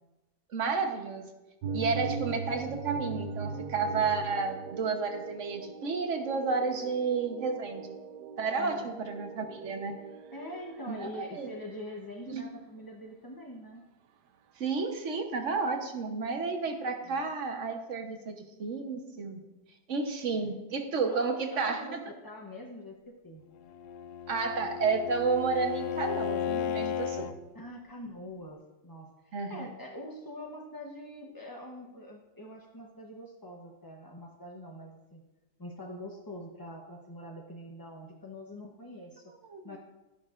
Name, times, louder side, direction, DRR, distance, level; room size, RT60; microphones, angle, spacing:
voice 1, 0.5-1.3 1.7-8.0 8.4-10.0 10.9-11.5 12.3-12.4 14.6-19.4 19.9-22.0 24.3-27.3 29.3-29.7 39.5-39.8, right 4 dB, 50° right, 5 dB, 1.2 m, -31 dB
sound 1, 1.6-11.0, right 5 dB, 75° right, 1.2 m, -40 dB
voice 2, 8.6-9.2 9.7-9.8 10.3-13.8 17.0-17.3 20.4-20.6 21.0-22.9 23.2-23.4 27.5-35.2 35.6-39.3 39.6-39.8, left 1 dB, 25° left, -1 dB, 0.4 m, -44 dB
Bowed string instrument, 23.6-27.3, left 8 dB, 70° left, 1.1 m, -34 dB
12.5 x 10.5 x 2.5 m, 1.0 s
omnidirectional pair, 1.9 m